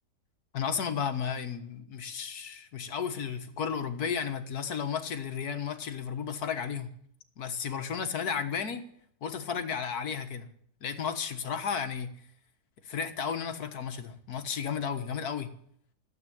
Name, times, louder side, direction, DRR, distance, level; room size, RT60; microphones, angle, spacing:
voice 1, 0.5-6.9 7.4-8.8 9.2-10.5 10.8-12.1 12.9-15.5, left 7 dB, 65° left, 1.8 m, -33 dB
15.0 x 8.4 x 9.9 m
omnidirectional pair, 1.8 m